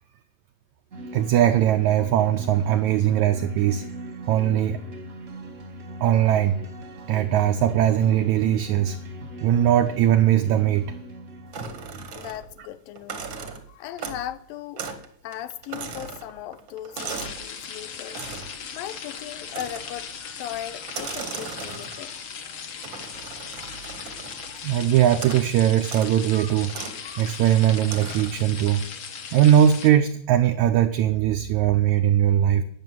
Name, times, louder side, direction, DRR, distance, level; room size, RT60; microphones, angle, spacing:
sound 1, 0.9-12.1, equal, 40° right, 1.1 m, -39 dB
voice 1, 1.1-3.9 4.3-4.8 6.0-6.6 7.1-9.0 9.4-10.9 24.6-26.7 27.2-28.9 29.3-32.6, right 11 dB, 80° right, 1.7 m, -20 dB
sound 2, 11.5-12.6 12.9-14.4 14.8-15.1 15.3-17.5 18.1-18.6 19.5-20.0 20.8-22.1 22.8-24.5 25.1-25.5 25.8-26.1 26.7-27.0 27.8-28.4, right 5 dB, 55° right, 1.3 m, -37 dB
voice 2, 12.1-13.2 13.7-14.9 15.2-18.2 18.7-20.1 20.4-22.1, left 12 dB, 80° left, 2.5 m, -37 dB
sound 3, 17.0-29.9, left 6 dB, 55° left, 1.7 m, -38 dB
13.5 x 6.9 x 9.3 m
omnidirectional pair, 4.1 m